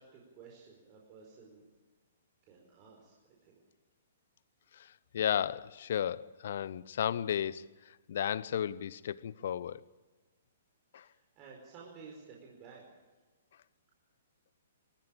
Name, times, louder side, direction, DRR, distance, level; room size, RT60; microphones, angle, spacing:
voice 1, 0.0-1.7 2.4-3.1 3.4-3.6 11.0-12.8, right 5 dB, 30° right, 4.8 m, -53 dB
voice 2, 5.1-7.6 8.1-9.8 10.9-11.0, left 9 dB, 55° left, 0.7 m, -33 dB
23.0 x 14.5 x 8.9 m
figure-of-eight pair, 120°, 0 cm